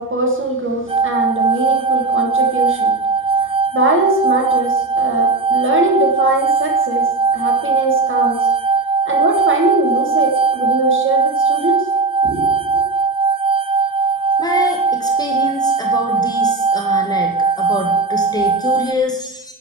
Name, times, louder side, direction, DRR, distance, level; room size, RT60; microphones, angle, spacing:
voice 1, 0.0-2.9 3.7-7.1 7.3-8.4 9.1-11.8 12.2-12.8, right 2 dB, 35° right, 1 dB, 3.5 m, -21 dB
sound 1, 0.9-18.9, right 4 dB, 15° right, 0.6 m, -18 dB
voice 2, 14.4-19.5, left 2 dB, 10° left, 2 dB, 2.0 m, -25 dB
11.5 x 11.0 x 7.5 m, 0.75 s
wide cardioid pair, 145°, 36 cm